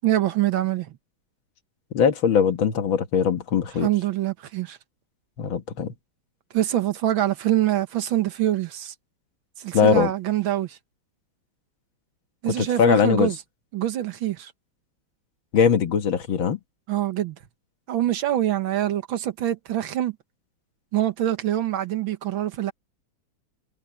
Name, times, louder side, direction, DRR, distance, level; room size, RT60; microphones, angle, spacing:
voice 1, 0.0-0.9 3.8-4.8 6.5-8.9 9.6-10.8 12.4-13.4 13.7-14.5 16.9-17.4 17.9-20.2 20.9-22.7, right 13 dB, 85° right, 2.0 m, -24 dB
voice 2, 1.9-3.9 5.4-5.9 9.7-10.1 12.5-13.3 15.5-16.6, left 7 dB, 80° left, 2.3 m, -21 dB
omnidirectional pair, 2.1 m